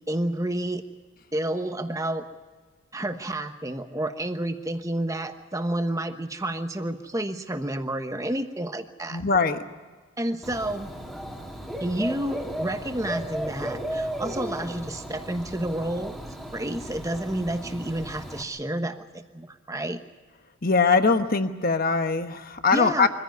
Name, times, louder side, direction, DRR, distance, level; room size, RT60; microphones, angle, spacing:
voice 1, 0.1-0.8 1.3-2.2 2.9-9.2 10.2-10.9 11.8-20.0 22.7-23.1, right 1 dB, 15° right, 7 dB, 1.1 m, -30 dB
voice 2, 9.1-9.6 20.6-23.1, left 4 dB, 40° left, 8 dB, 1.2 m, -22 dB
Dog / Bird, 10.4-18.4, right 1 dB, ahead, 2.0 m, -35 dB
24.0 x 15.5 x 9.4 m, 1.4 s
head